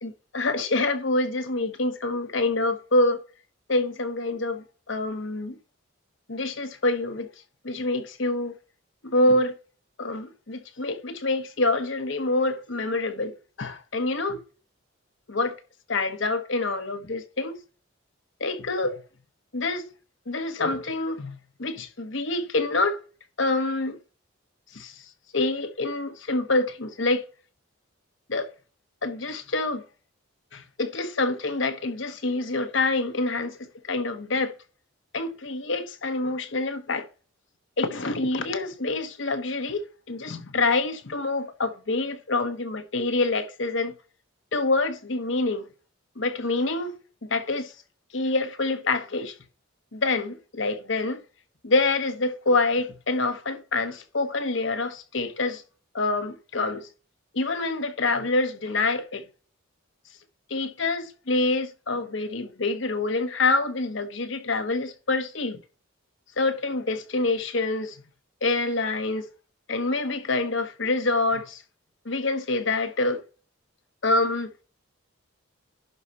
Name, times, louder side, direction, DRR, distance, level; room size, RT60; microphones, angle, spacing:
voice 1, 0.0-3.2 3.7-5.6 6.3-7.3 7.6-8.5 9.0-9.5 10.0-13.3 13.6-14.4 15.3-15.6 15.9-17.6 18.4-19.0 19.5-19.9 20.3-23.0 23.4-24.0 24.7-25.0 25.3-27.2 28.3-28.5 29.0-29.8 30.5-34.5 35.1-37.1 37.8-43.9 44.5-45.6 46.2-46.9 47.3-47.7 48.1-49.3 49.9-51.2 51.6-55.6 55.9-56.9 57.3-59.2 60.5-65.6 66.4-68.0 68.4-69.3 69.7-71.6 72.0-73.2 74.0-74.5, left 2 dB, 65° left, 1.2 m, -26 dB
11.0 x 4.9 x 4.2 m
head